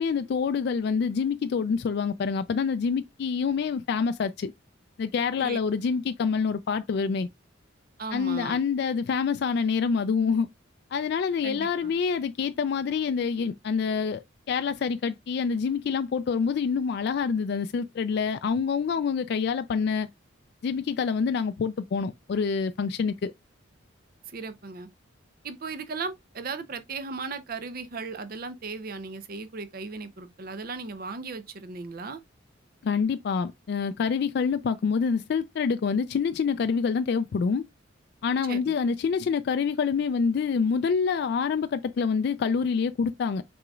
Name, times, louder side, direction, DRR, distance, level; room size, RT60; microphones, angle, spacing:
voice 1, 0.0-4.5 5.0-7.3 8.1-10.5 10.9-20.1 20.6-23.3 32.8-37.6 38.2-43.4, left 5 dB, 55° left, 0.3 m, -26 dB
voice 2, 8.0-8.6 11.4-11.9 24.3-24.9 25.4-32.2 38.4-38.7, right 4 dB, 50° right, 0.6 m, -36 dB
6.0 x 3.9 x 2.3 m
head